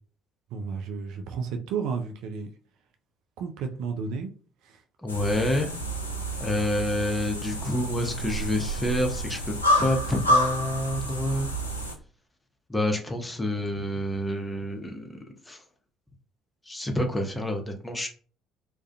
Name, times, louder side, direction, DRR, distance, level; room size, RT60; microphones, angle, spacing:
voice 1, 0.5-2.5 3.4-4.3 4.6-4.8, right 5 dB, 65° right, 0.3 m, -32 dB
voice 2, 5.0-5.7 6.4-11.5 12.7-15.6 16.6-18.1, left 1 dB, 15° left, 0.7 m, -28 dB
sound 1, 5.1-11.9, equal, 90° left, 0.3 m, -28 dB
2.3 x 2.1 x 2.6 m
figure-of-eight pair, 50°, 0 cm